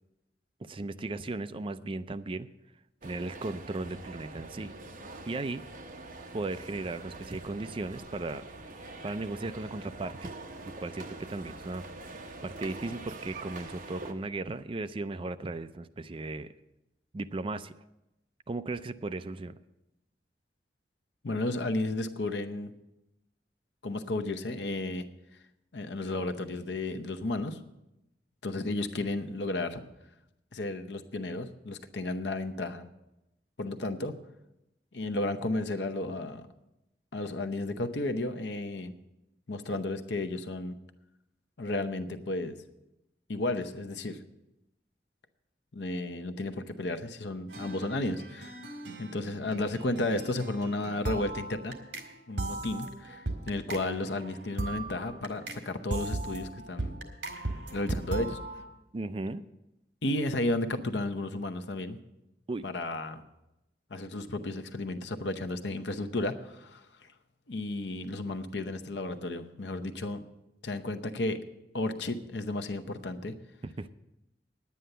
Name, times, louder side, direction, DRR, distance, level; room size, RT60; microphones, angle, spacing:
voice 1, 0.6-2.5 3.0-4.7 5.3-5.6 6.3-8.4 9.0-10.3 10.8-11.8 12.1-16.5 17.1-17.7 18.5-19.5 58.9-59.4 62.5-62.7 73.6-73.9, right 2 dB, 30° right, 12 dB, 0.4 m, -36 dB
sound 1, 3.0-14.1, right 2 dB, 50° right, 1.1 m, -45 dB
voice 2, 21.2-22.7 23.8-25.1 25.7-27.6 28.4-29.8 30.5-32.9 33.6-34.2 34.9-36.5 37.1-38.9 39.5-40.8 41.6-42.5 43.3-44.2 45.7-48.6 49.0-51.7 52.3-57.0 57.7-58.4 60.0-62.0 62.6-63.2 63.9-66.8 67.5-70.2 70.6-71.4 71.7-73.3, left 2 dB, 75° left, 9 dB, 0.8 m, -33 dB
sound 2, 47.5-52.1 52.4-55.6 55.9-58.6, right 2 dB, 70° right, 1.8 m, -38 dB
10.0 x 9.4 x 6.7 m, 0.92 s
head